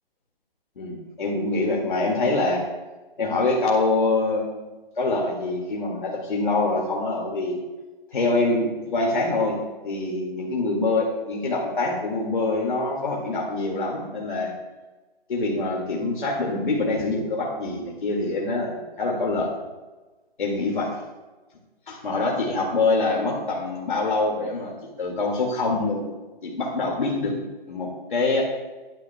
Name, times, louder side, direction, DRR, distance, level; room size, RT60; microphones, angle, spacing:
voice 1, 0.8-2.6 3.2-4.7 5.0-7.6 8.1-9.6 9.8-14.5 15.3-19.5 20.4-20.9 21.9-26.1 26.4-27.3 27.7-28.4, left 2 dB, 55° left, -2 dB, 2.2 m, -25 dB
22.0 x 8.5 x 2.3 m, 1.2 s
hypercardioid pair, 175°, 30 cm